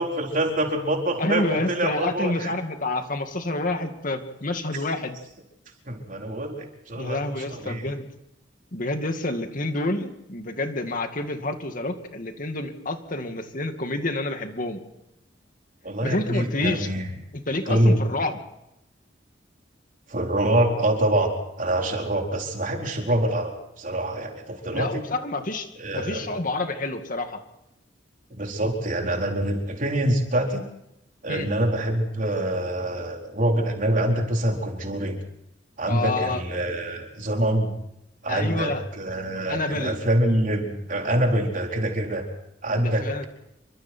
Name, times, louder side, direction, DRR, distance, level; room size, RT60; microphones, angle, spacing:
voice 1, 0.0-2.5 5.9-7.8 15.8-17.1 17.7-18.0 20.1-25.0 25.8-26.3 28.4-30.6 31.2-35.2 35.8-37.7 38.2-42.3 42.6-43.3, right 1 dB, 45° right, 2 dB, 4.3 m, -25 dB
voice 2, 1.2-5.2 6.9-8.1 8.7-14.8 16.0-16.9 17.3-18.4 24.7-25.7 25.9-27.4 31.3-31.5 35.8-36.4 38.3-38.8 39.5-40.0 42.8-43.2, left 2 dB, 45° left, 6 dB, 2.4 m, -28 dB
28.0 x 25.0 x 4.6 m, 0.82 s
head